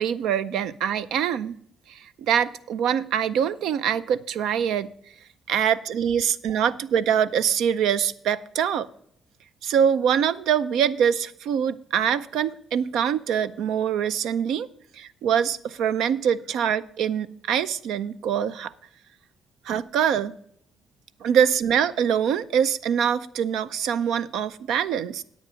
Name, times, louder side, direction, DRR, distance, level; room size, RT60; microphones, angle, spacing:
voice 1, 0.0-1.5 1.9-4.9 5.5-8.9 9.6-14.7 14.9-18.7 19.6-20.4 21.2-25.2, right 8 dB, 85° right, 15 dB, 0.5 m, -24 dB
10.0 x 8.3 x 5.0 m, 0.69 s
cardioid pair, 90°, 0 cm